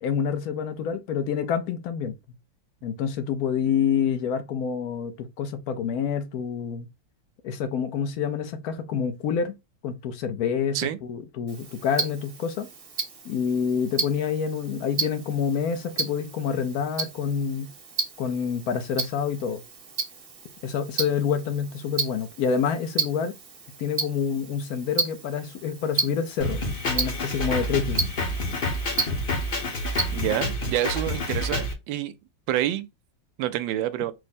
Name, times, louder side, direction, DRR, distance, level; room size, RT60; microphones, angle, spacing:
voice 1, 0.0-2.1 2.8-6.9 7.4-9.5 9.8-12.7 13.2-17.7 18.2-19.6 20.6-23.3 23.8-28.1, left 7 dB, 65° left, 0.9 m, -27 dB
Tick-tock, 11.5-30.5, right 4 dB, 40° right, 0.9 m, -34 dB
Drum kit, 26.4-31.7, left 1 dB, 40° left, 0.8 m, -28 dB
voice 2, 30.1-32.1 32.5-32.9 33.4-34.1, right 13 dB, 80° right, 1.3 m, -27 dB
4.7 x 2.1 x 4.1 m
omnidirectional pair, 2.2 m